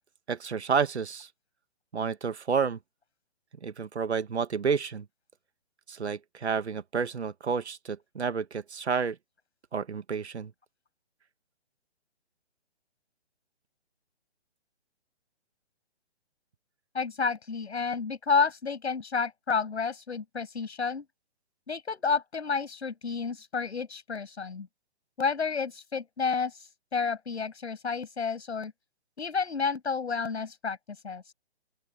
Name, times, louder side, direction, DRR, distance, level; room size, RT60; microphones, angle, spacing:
voice 1, 0.3-1.3 1.9-2.8 3.6-5.1 5.9-9.2 9.7-10.5, right 6 dB, 75° right, 2.0 m, -30 dB
voice 2, 16.9-21.0 21.7-24.7 25.2-28.7 29.2-30.8 31.0-31.3, left 5 dB, 75° left, 6.6 m, -30 dB
open air
hypercardioid pair, 150°, 34 cm